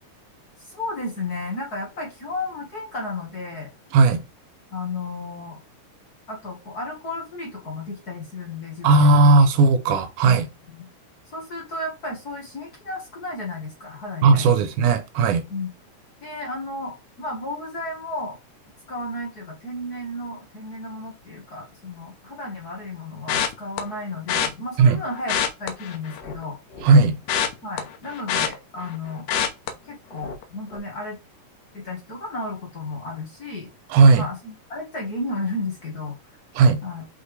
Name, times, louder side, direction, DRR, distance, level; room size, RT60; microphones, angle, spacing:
voice 1, 0.6-3.7 4.7-5.6 6.3-9.3 10.2-10.4 10.7-10.9 11.3-14.7 15.5-15.7 16.2-18.4 18.9-26.6 27.6-29.3 29.9-31.2 31.7-33.7 34.1-36.2 36.8-37.0, left 2 dB, 40° left, 1.7 m, -33 dB
voice 2, 8.8-10.5 14.2-15.5 24.8-25.0 26.8-27.2 33.9-34.3 36.6-36.8, right 3 dB, 85° right, 2.3 m, -16 dB
sound 1, 23.3-23.8 24.3-24.5 25.2-26.4 26.7-29.0 29.3-29.7 30.2-30.4 30.7-30.8, left 8 dB, 85° left, 2.4 m, -25 dB
5.8 x 5.4 x 3.3 m
omnidirectional pair, 3.5 m